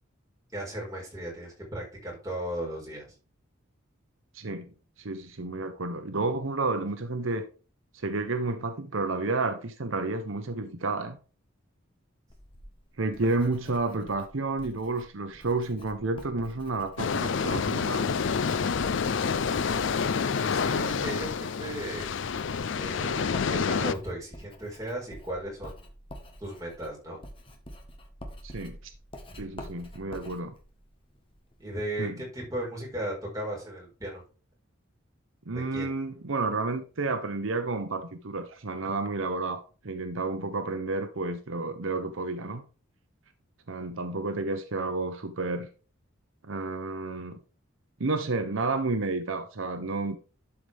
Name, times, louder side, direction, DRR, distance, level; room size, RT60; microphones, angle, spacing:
voice 1, 0.5-3.1 20.5-22.1 22.8-25.9 26.4-27.2 31.6-34.2 35.5-35.9, right 1 dB, 15° right, 4.5 m, -36 dB
voice 2, 4.3-4.7 5.0-7.4 8.0-11.2 13.0-18.1 28.4-28.8 29.4-30.5 32.0-32.1 35.5-42.6 43.7-45.7 46.4-47.4 48.0-50.2, right 3 dB, 75° right, 0.9 m, -31 dB
Writing, 12.3-31.8, equal, 25° left, 1.3 m, -48 dB
sound 1, 17.0-23.9, left 5 dB, 65° left, 0.5 m, -28 dB
11.5 x 4.9 x 3.4 m
head